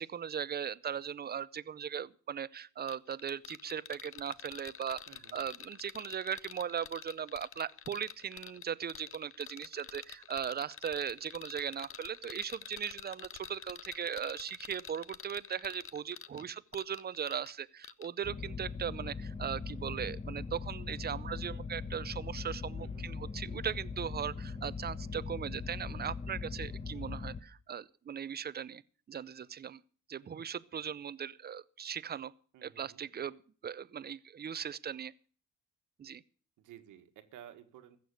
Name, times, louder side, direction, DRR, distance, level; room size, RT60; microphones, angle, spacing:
voice 1, 0.0-28.8 29.1-29.8 30.1-32.3 32.6-35.1 36.0-36.2, right 8 dB, 35° right, 0.6 m, -38 dB
sound 1, 2.9-17.5 17.8-18.1, left 9 dB, 45° left, 0.7 m, -48 dB
voice 2, 5.1-5.4 16.3-16.5 22.8-23.1 32.5-33.0 36.6-38.0, right 10 dB, 85° right, 1.6 m, -54 dB
sound 2, 18.2-27.4, left 4 dB, 20° left, 1.1 m, -40 dB
15.0 x 6.9 x 8.0 m
cardioid pair, 90°, 30 cm